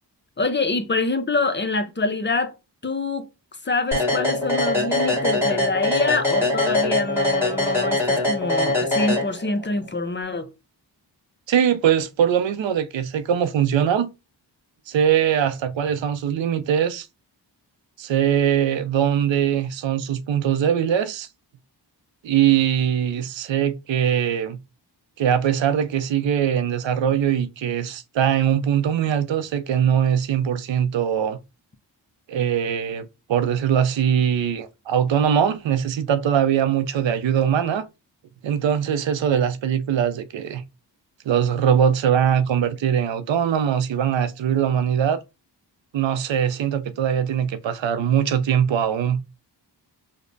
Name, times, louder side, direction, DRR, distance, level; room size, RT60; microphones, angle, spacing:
voice 1, 0.4-2.5 2.8-3.3 3.6-10.5, left 3 dB, 25° left, 0.5 m, -25 dB
sound 1, 3.9-9.7, left 2 dB, 5° right, 1.5 m, -22 dB
voice 2, 11.5-14.1 14.9-17.1 18.0-21.3 22.2-24.6 25.2-31.4 32.3-37.9 38.4-40.6 41.3-45.2 45.9-49.3, right 9 dB, 90° right, 0.5 m, -21 dB
4.9 x 2.1 x 2.6 m
cardioid pair, 60°, 44 cm